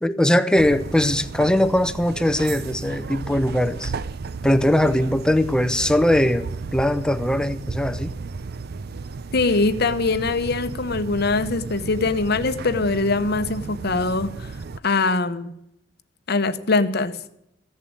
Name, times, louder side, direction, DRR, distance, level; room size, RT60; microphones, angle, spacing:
voice 1, 0.0-3.9 4.4-8.1, left 1 dB, 5° left, 11 dB, 0.7 m, -20 dB
sound 1, 0.6-14.8, right 4 dB, 55° right, 0.5 m, -34 dB
voice 2, 9.3-14.5 14.8-15.5 16.3-17.2, left 3 dB, 55° left, 11 dB, 0.9 m, -22 dB
15.5 x 7.1 x 9.5 m, 0.80 s
head